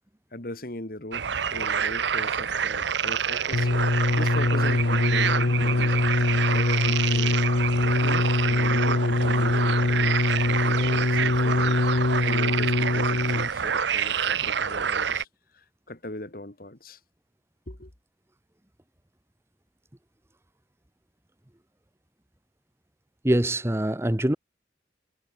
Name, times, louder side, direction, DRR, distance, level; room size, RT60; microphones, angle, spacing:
voice 1, 0.3-6.1 6.5-7.4 8.0-11.8 12.2-15.3 15.5-17.0 17.7-17.9, left 1 dB, 50° left, 2.1 m, -39 dB
sound 1, 1.1-15.2, right 7 dB, 75° right, 0.8 m, -27 dB
sound 2, 3.5-13.6 14.5-14.6, left 2 dB, 75° left, 0.8 m, -23 dB
voice 2, 23.2-24.4, right 1 dB, 15° right, 0.9 m, -23 dB
head